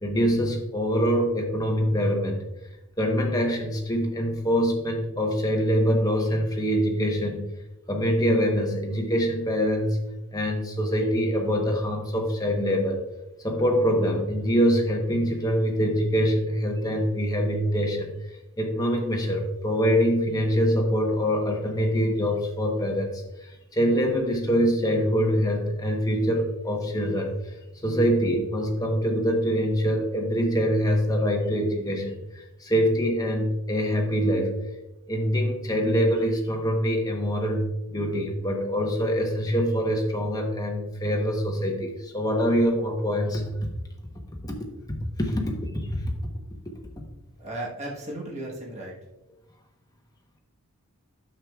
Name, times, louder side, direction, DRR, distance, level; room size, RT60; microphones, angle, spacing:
voice 1, 0.0-2.4 3.0-7.4 7.9-10.0 10.3-13.0 13.4-18.1 18.6-27.3 27.8-34.5 35.1-37.6 37.9-43.4 44.4-44.5 44.9-45.4 45.7-46.0, equal, 15° left, 1 dB, 1.0 m, -24 dB
voice 2, 47.4-49.0, right 1 dB, 30° right, -3 dB, 1.3 m, -35 dB
9.4 x 7.3 x 2.4 m, 0.96 s
head